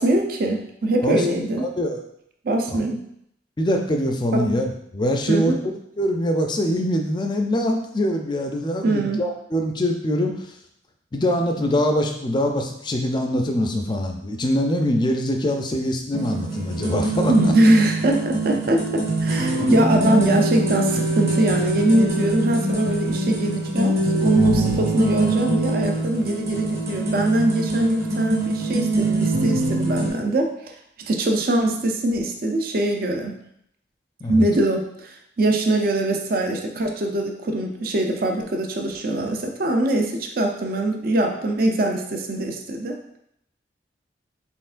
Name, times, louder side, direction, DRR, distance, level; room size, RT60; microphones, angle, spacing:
voice 1, 0.0-1.7 2.4-3.0 4.3-4.5 5.3-5.6 8.8-9.2 17.3-30.5 31.1-33.3 34.3-43.0, right 1 dB, 50° right, 3 dB, 0.5 m, -22 dB
voice 2, 1.0-2.0 3.6-5.7 6.0-10.3 11.1-17.5 19.5-20.1 34.2-34.5, equal, 25° left, 3 dB, 0.4 m, -23 dB
sound 1, 16.1-30.1, right 2 dB, 35° right, 1.3 m, -23 dB
4.4 x 3.5 x 2.5 m, 0.73 s
head